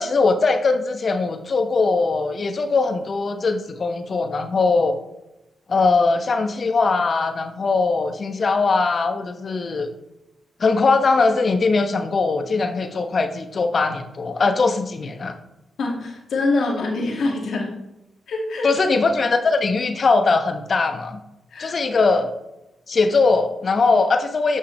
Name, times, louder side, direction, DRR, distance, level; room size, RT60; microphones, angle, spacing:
voice 1, 0.0-5.0 5.7-9.9 10.6-15.4 18.6-21.2 21.6-22.3 22.9-24.6, left 3 dB, 50° left, 7 dB, 1.0 m, -20 dB
voice 2, 15.8-17.7 18.3-18.7 21.5-21.8, left 2 dB, 70° left, 0 dB, 2.1 m, -24 dB
11.5 x 5.6 x 3.2 m, 0.94 s
supercardioid pair, 50°, 0 cm